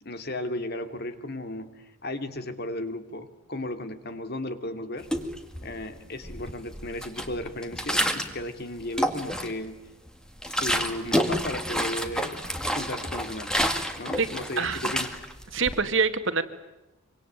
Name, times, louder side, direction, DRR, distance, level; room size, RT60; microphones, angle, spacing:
voice 1, 0.0-5.1 5.6-9.8 10.4-12.4 12.7-13.5 14.0-15.1, left 1 dB, 50° left, 9 dB, 2.5 m, -35 dB
sound 1, 5.0-5.9 6.2-8.4 8.8-9.7 10.1-15.8, equal, 5° left, 2.1 m, -29 dB
voice 2, 15.5-16.4, right 4 dB, 65° right, 9 dB, 2.2 m, -25 dB
25.5 x 25.5 x 9.0 m, 1.0 s
head